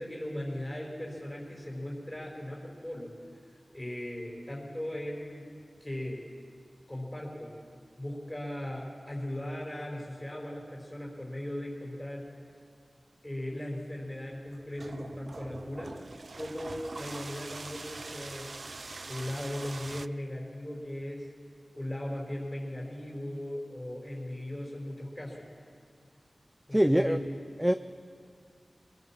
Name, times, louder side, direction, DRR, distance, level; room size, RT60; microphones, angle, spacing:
voice 1, 0.0-3.1 3.7-5.5 5.8-6.3 6.9-7.5 8.0-12.3 13.2-16.1 16.3-18.5 19.1-21.3 21.7-25.5 26.7-27.2, left 1 dB, 15° left, -2 dB, 4.8 m, -38 dB
sound 1, 14.5-20.1, right 3 dB, 65° right, 0.4 m, -43 dB
voice 2, 26.7-27.2 27.6-27.7, equal, 10° right, 10 dB, 0.6 m, -23 dB
22.0 x 18.0 x 7.4 m, 2.3 s
wide cardioid pair, 50°, 0 cm